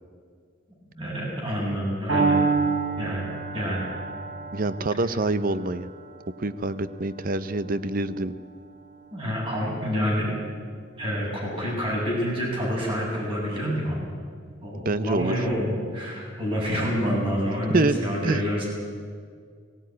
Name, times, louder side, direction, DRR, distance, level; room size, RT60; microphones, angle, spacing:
voice 1, 1.0-2.4 3.0-3.3 3.5-3.8 9.1-10.3 11.0-14.1 14.6-18.7, equal, 30° right, -3 dB, 7.6 m, -27 dB
Piano, 2.1-10.0, right 4 dB, 80° right, 6.4 m, -30 dB
voice 2, 4.5-5.9 6.4-8.3 14.8-15.4 17.7-18.0 18.2-18.4, right 2 dB, 50° right, 15 dB, 0.7 m, -26 dB
18.0 x 17.0 x 9.5 m, 2.1 s
head